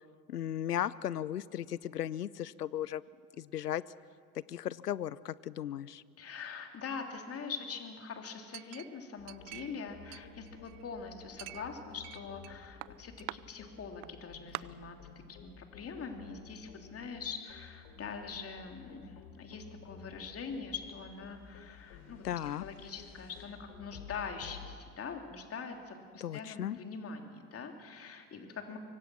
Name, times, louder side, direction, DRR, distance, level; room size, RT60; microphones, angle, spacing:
voice 1, 0.3-3.0 3.4-3.8 4.5-6.0 22.2-22.6 26.2-26.8, left 11 dB, 90° left, 20 dB, 0.7 m, -36 dB
voice 2, 6.2-15.0 15.3-28.8, left 5 dB, 30° left, 4 dB, 3.2 m, -43 dB
Chink clink, 8.5-9.8 10.1-10.9 11.4-12.5 12.8-13.4 14.0-14.1 14.5-14.6, right 26 dB, 45° right, 0.6 m, -44 dB
sound 1, 9.2-24.7, left 7 dB, 55° left, 4.3 m, -53 dB
25.0 x 24.0 x 6.3 m, 2.1 s
hypercardioid pair, 80°, 45 cm